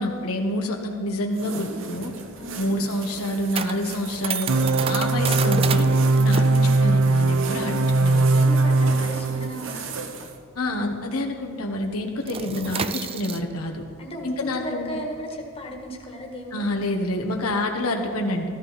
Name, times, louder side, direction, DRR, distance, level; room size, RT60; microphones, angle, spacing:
voice 1, 0.0-2.1 2.6-4.5 4.9-5.9 6.2-8.5 10.5-13.8 14.2-15.0 16.5-18.5, left 1 dB, 85° left, 2 dB, 1.2 m, -27 dB
sound 1, 1.3-10.4, right 4 dB, 60° right, 1.0 m, -37 dB
sound 2, 2.0-11.0 11.2-11.5 11.8-17.5, right 7 dB, 25° right, 0.3 m, -33 dB
voice 2, 2.4-2.8 8.4-10.0 14.0-16.7, equal, 25° left, 0 dB, 1.6 m, -36 dB
sound 3, 4.5-9.5, right 2 dB, 75° right, 0.5 m, -20 dB
14.0 x 14.0 x 4.1 m, 2.3 s
head